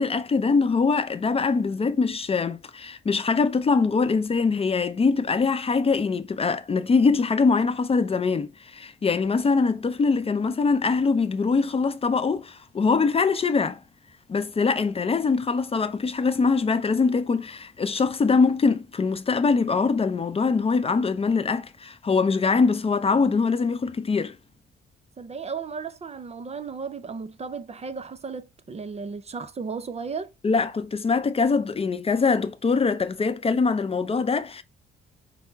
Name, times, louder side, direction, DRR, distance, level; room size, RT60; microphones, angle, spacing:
voice 1, 0.0-13.8 14.3-24.4 30.4-34.6, left 4 dB, 30° left, 0.5 m, -23 dB
voice 2, 25.2-30.3, right 5 dB, 30° right, 0.5 m, -35 dB
5.6 x 2.0 x 4.5 m
cardioid pair, 90°, 20 cm